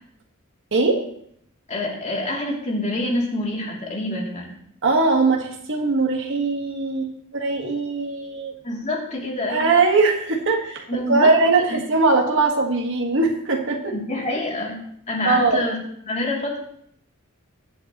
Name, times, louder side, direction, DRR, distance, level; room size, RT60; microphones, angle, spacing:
voice 1, 0.7-1.0 4.8-8.6 9.5-13.9 15.2-15.6, right 3 dB, 60° right, 1 dB, 1.7 m, -20 dB
voice 2, 1.7-4.5 8.6-9.8 10.9-11.4 11.7-11.8 13.9-15.8 16.1-16.6, left 1 dB, 35° left, -2 dB, 2.9 m, -26 dB
22.0 x 7.8 x 3.0 m, 0.69 s
head